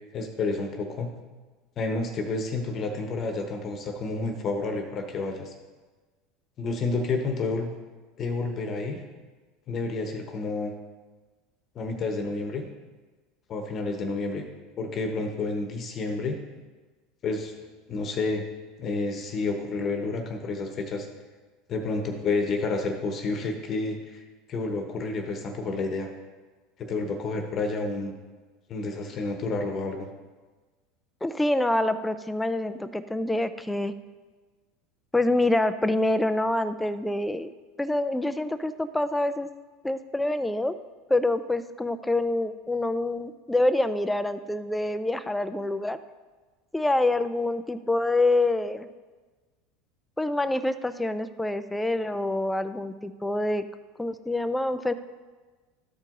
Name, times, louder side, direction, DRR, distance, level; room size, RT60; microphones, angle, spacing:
voice 1, 0.1-1.1 1.8-5.5 6.6-7.7 8.2-9.0 9.7-10.7 11.7-12.6 13.5-14.5 14.8-16.4 17.2-17.5 17.9-18.4 18.8-21.1 21.7-26.1 26.8-28.1 28.7-30.1, left 3 dB, 40° left, 4 dB, 1.1 m, -30 dB
voice 2, 31.2-33.9 35.1-37.5 37.8-39.5 39.8-40.7 41.1-46.0 46.7-48.9 50.2-53.6 54.0-54.9, left 2 dB, 5° left, 11 dB, 0.5 m, -26 dB
13.0 x 4.6 x 3.8 m, 1.3 s
supercardioid pair, 110°, 0 cm